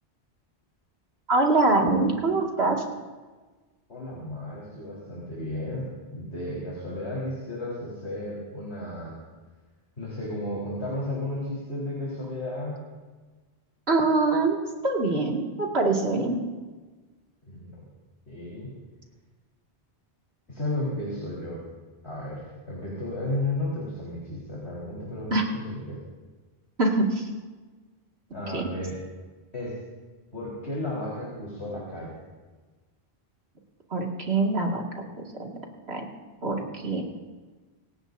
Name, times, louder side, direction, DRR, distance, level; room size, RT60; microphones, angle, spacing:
voice 1, 1.3-2.8 13.9-14.6 14.8-16.4 25.3-25.4 26.8-27.3 28.5-28.6 33.9-34.8 35.2-35.5 35.9-36.0 36.4-37.0, right 3 dB, 70° right, 0 dB, 2.4 m, -24 dB
voice 2, 3.9-9.2 10.0-12.8 17.5-17.8 18.3-18.7 20.5-21.6 22.0-26.0 28.3-29.0 29.5-29.8 30.3-32.2, left 1 dB, 75° left, -6 dB, 4.3 m, -33 dB
27.0 x 16.5 x 2.7 m, 1.3 s
omnidirectional pair, 1.1 m